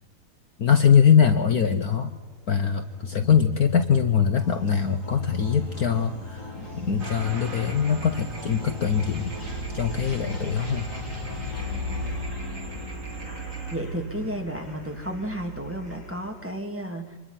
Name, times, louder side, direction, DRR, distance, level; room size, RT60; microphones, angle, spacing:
voice 1, 0.6-2.2 2.5-9.3 9.7-10.9, left 7 dB, 55° left, 8 dB, 1.4 m, -22 dB
sound 1, 1.1-16.5, left 1 dB, 40° left, 6.2 m, -36 dB
sound 2, 4.4-12.2, equal, 90° left, 4.8 m, -43 dB
sound 3, 7.0-13.8, equal, 30° right, 2.0 m, -43 dB
voice 2, 13.7-17.2, right 1 dB, 5° right, 3 dB, 2.5 m, -32 dB
26.0 x 21.5 x 5.8 m, 1.1 s
omnidirectional pair, 2.0 m